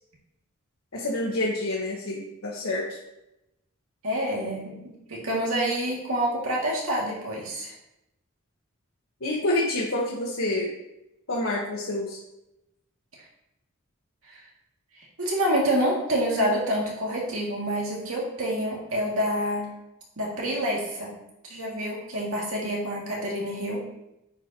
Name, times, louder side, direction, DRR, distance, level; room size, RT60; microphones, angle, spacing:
voice 1, 0.9-2.8 9.2-10.7 11.3-12.2, left 1 dB, 70° left, -4 dB, 1.3 m, -27 dB
voice 2, 4.0-7.7 14.3-14.4 15.0-19.7 20.2-21.1 21.4-23.8, equal, 75° right, -3 dB, 2.2 m, -27 dB
9.7 x 5.1 x 2.9 m, 0.88 s
head